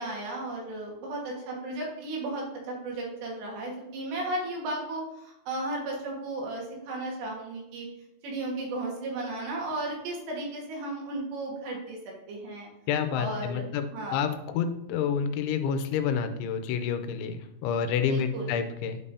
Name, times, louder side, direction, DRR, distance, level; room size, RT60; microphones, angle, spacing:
voice 1, 0.0-7.9 8.2-12.0 12.3-12.7 13.1-13.7 13.9-14.3 18.1-18.5, right 2 dB, 70° right, -1 dB, 3.6 m, -34 dB
voice 2, 12.9-13.8 14.1-19.0, left 7 dB, 85° left, 9 dB, 3.0 m, -28 dB
11.5 x 5.4 x 2.7 m, 0.90 s
omnidirectional pair, 5.4 m